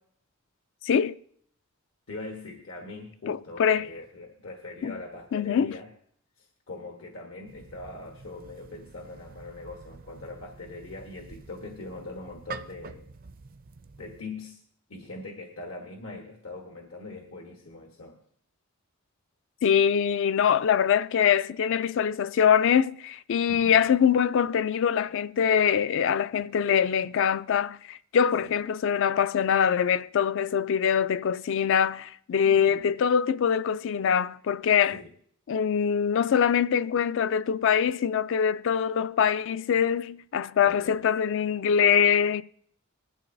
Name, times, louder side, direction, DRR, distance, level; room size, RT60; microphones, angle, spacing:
voice 1, 0.8-1.1 3.3-3.9 4.8-5.0 5.3-5.8 19.6-35.0 35.5-42.4, left 7 dB, 60° left, 0.4 m, -23 dB
voice 2, 2.1-5.9 6.4-13.1 14.0-14.6 14.9-18.2 23.5-23.8 28.4-28.6 32.4-32.9 34.9-35.1 40.7-41.0, left 2 dB, 80° left, 1.3 m, -42 dB
sound 1, 7.5-14.2, right 4 dB, 45° right, 0.4 m, -47 dB
19.5 x 12.0 x 2.7 m
head